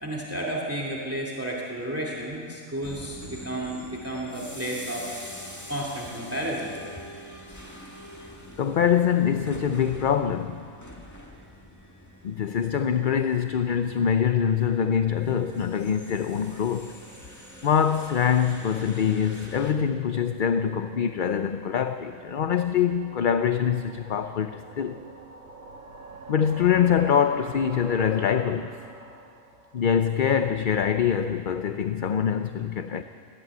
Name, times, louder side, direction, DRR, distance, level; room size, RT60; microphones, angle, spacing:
voice 1, 0.0-5.1 5.4-6.8, right 1 dB, 10° right, -2 dB, 2.3 m, -32 dB
sound 1, 2.8-19.7, equal, 15° left, 2.0 m, -45 dB
voice 2, 8.6-10.7 12.2-17.0 17.6-25.0 26.3-28.7 29.7-33.0, left 8 dB, 50° left, 9 dB, 0.6 m, -24 dB
sound 2, 15.1-30.3, right 2 dB, 80° right, 1.8 m, -47 dB
19.0 x 15.0 x 9.4 m, 2.3 s
omnidirectional pair, 1.4 m